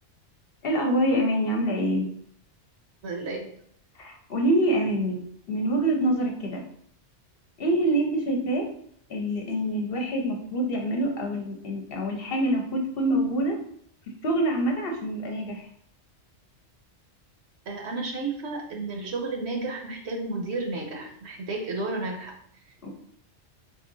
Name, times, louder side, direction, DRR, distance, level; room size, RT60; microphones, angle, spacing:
voice 1, 0.6-2.1 4.0-5.2 5.5-6.6 7.6-8.7 9.1-13.6 14.2-15.7 22.8-23.0, right 1 dB, 60° left, 1 dB, 0.9 m, -25 dB
voice 2, 3.0-3.5 17.7-22.3, right 3 dB, 65° right, 1 dB, 1.0 m, -32 dB
3.7 x 2.6 x 3.9 m, 0.64 s
omnidirectional pair, 1.2 m